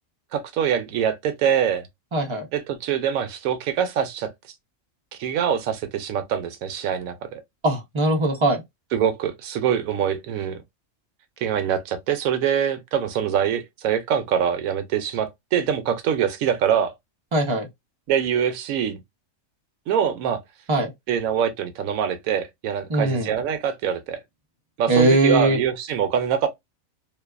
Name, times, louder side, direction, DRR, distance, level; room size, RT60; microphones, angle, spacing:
voice 1, 0.3-1.9 2.5-4.3 5.2-7.4 8.9-10.6 11.4-16.9 18.1-19.0 19.9-20.4 21.1-24.2 24.8-26.5, right 8 dB, 90° right, 1.0 m, -24 dB
voice 2, 2.1-2.5 7.6-8.6 17.3-17.7 20.7-20.9 22.9-23.3 24.9-25.6, right 2 dB, 40° right, 0.4 m, -20 dB
2.6 x 2.2 x 2.3 m
omnidirectional pair, 1.4 m